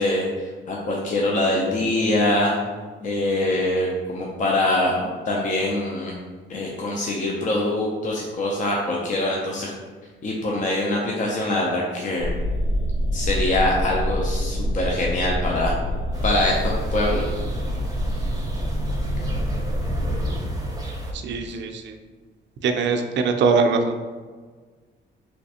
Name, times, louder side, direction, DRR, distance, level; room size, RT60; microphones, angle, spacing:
voice 1, 0.0-2.6 3.0-6.1 6.5-9.7 10.2-12.3 13.1-15.8 16.2-17.2, left 1 dB, 40° left, -2 dB, 0.5 m, -24 dB
sound 1, 12.2-20.4, equal, 90° left, 0.6 m, -26 dB
sound 2, 16.1-21.1, right 1 dB, 20° right, 0.6 m, -30 dB
voice 2, 21.2-21.8 22.6-23.9, right 4 dB, 65° right, 5 dB, 0.4 m, -21 dB
3.2 x 3.1 x 2.8 m, 1.4 s
cardioid pair, 90°, 20 cm